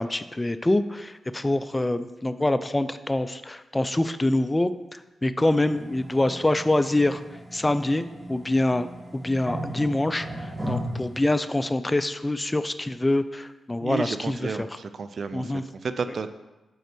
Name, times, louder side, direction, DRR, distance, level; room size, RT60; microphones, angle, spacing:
voice 1, 0.0-7.2 7.5-8.9 9.1-14.7 15.3-15.6, left 1 dB, 20° left, 12 dB, 0.4 m, -25 dB
sound 1, 5.4-11.2, right 1 dB, 15° right, 1.6 m, -36 dB
voice 2, 13.8-16.3, right 5 dB, 60° right, 10 dB, 0.4 m, -32 dB
5.5 x 4.3 x 6.0 m, 1.1 s
supercardioid pair, 45°, 0 cm